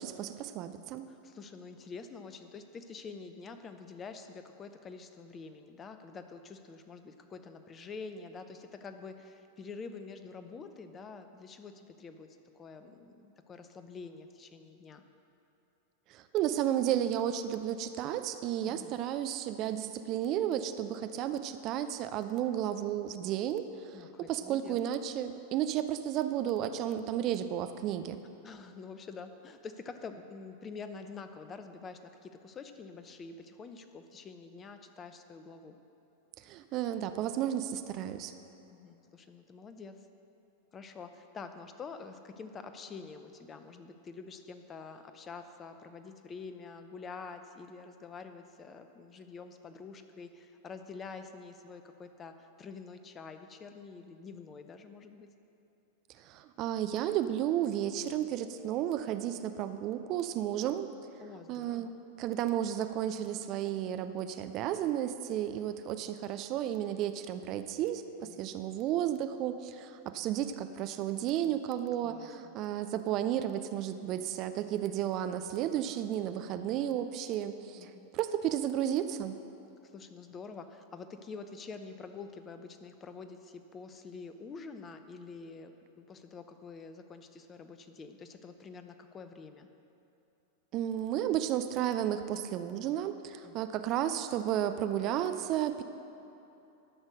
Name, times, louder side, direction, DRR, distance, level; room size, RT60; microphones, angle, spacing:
voice 1, 0.0-1.1 16.1-24.0 24.3-28.2 36.4-38.3 56.2-60.9 61.5-61.9 62.2-68.0 68.4-79.3 90.7-95.8, right 11 dB, 40° right, 10 dB, 0.5 m, -33 dB
voice 2, 1.1-15.0 18.7-19.0 23.9-24.8 28.4-35.8 38.7-40.1 40.7-55.3 61.2-62.0 68.2-68.4 72.0-72.6 77.8-78.1 79.8-89.7 93.4-93.6, left 4 dB, 25° left, 8 dB, 0.7 m, -47 dB
12.0 x 6.3 x 6.3 m, 3.0 s
figure-of-eight pair, 90°, 0 cm